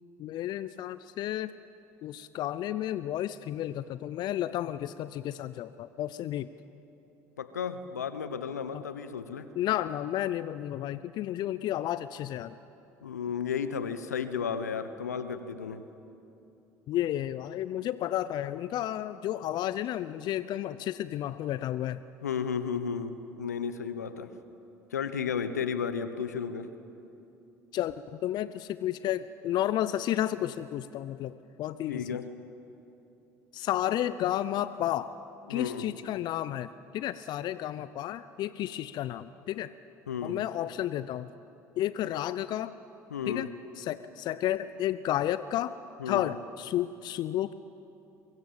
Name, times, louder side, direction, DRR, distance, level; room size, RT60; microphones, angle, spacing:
voice 1, 0.2-1.5 2.0-6.5 8.7-8.8 9.6-12.6 16.9-22.0 27.7-32.2 33.5-35.1 35.5-39.7 40.2-41.3 41.8-42.7 43.3-43.5 43.8-45.7 46.1-47.5, left 12 dB, 55° left, 15 dB, 0.6 m, -32 dB
voice 2, 7.4-9.5 13.0-15.8 22.2-24.3 24.9-26.7 31.9-32.3 35.5-35.9 40.1-40.4 43.1-43.5 46.0-46.3, left 7 dB, 90° left, 12 dB, 1.1 m, -33 dB
23.5 x 23.0 x 7.5 m, 2.9 s
hypercardioid pair, 65°, 9 cm